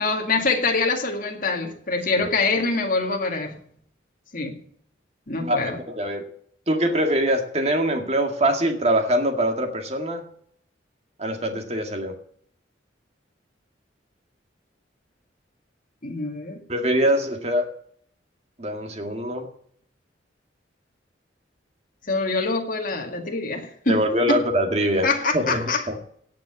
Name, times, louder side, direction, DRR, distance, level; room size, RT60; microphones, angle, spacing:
voice 1, 0.0-3.6 4.3-4.6 5.3-5.8 16.0-16.6 22.0-24.0 24.3-24.4 25.0-25.9, left 3 dB, 45° left, 2.1 m, -25 dB
voice 2, 5.9-6.3 6.7-10.2 11.2-12.1 16.7-17.7 18.6-19.5 23.9-25.1 25.3-26.1, right 1 dB, 35° right, 2.0 m, -23 dB
17.5 x 6.0 x 8.0 m
head